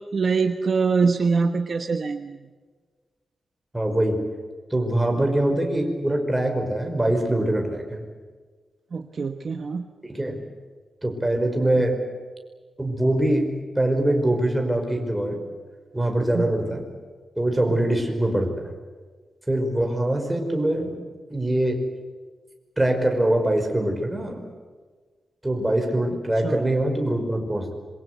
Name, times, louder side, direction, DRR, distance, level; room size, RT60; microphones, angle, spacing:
voice 1, 0.0-2.4 8.9-9.8 16.3-16.5 17.7-17.8 26.4-26.7, right 4 dB, 50° right, 6 dB, 1.2 m, -24 dB
voice 2, 3.7-4.2 4.7-8.0 10.1-10.4 11.0-12.0 12.8-13.5 13.8-15.4 15.9-16.9 17.4-18.7 19.5-20.9 21.3-21.8 22.8-24.4 25.4-27.7, right 1 dB, 10° right, 3 dB, 5.4 m, -23 dB
26.5 x 24.0 x 8.2 m, 1.4 s
wide cardioid pair, 115°, 0 cm